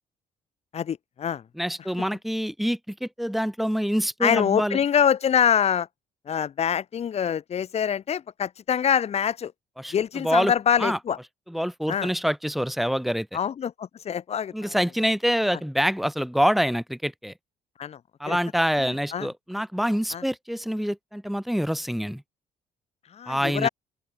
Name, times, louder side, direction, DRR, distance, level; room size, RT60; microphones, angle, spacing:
voice 1, 0.7-1.4 4.2-5.9 6.3-9.5 9.9-11.2 11.9-12.1 13.3-14.7 17.8-18.0 18.3-18.4 18.8-19.3 20.1-20.2 23.1-23.7, left 8 dB, 45° left, 2.2 m, -25 dB
voice 2, 1.6-4.8 9.8-9.9 10.2-10.5 10.8-11.0 11.5-13.3 14.5-17.3 18.2-22.2 23.3-23.7, equal, ahead, 0.7 m, -26 dB
open air
cardioid pair, 120°, 15 cm